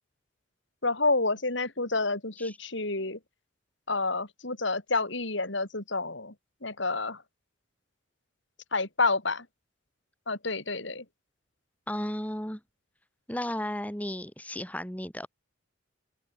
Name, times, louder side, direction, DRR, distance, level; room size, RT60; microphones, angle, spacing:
voice 1, 0.8-3.2 3.9-6.3 6.6-7.2 8.7-9.5 10.3-11.0, left 3 dB, 65° left, 4.8 m, -29 dB
voice 2, 11.9-12.6 13.3-15.3, left 1 dB, 10° left, 4.6 m, -34 dB
open air
head